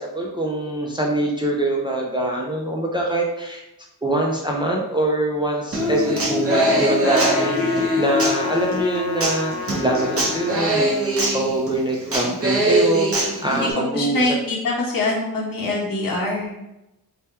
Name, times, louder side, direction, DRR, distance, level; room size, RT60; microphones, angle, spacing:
voice 1, 0.0-3.6 4.0-9.5 9.8-10.9 11.3-14.4, right 1 dB, 15° right, -2 dB, 0.4 m, -24 dB
Human voice / Acoustic guitar, 5.7-13.7, equal, 40° right, 0.9 m, -22 dB
Trumpet, 7.0-10.7, left 5 dB, 85° left, 0.5 m, -31 dB
voice 2, 13.6-16.6, left 2 dB, 65° left, -2 dB, 1.1 m, -24 dB
3.4 x 2.2 x 4.2 m, 0.92 s
wide cardioid pair, 155°, 37 cm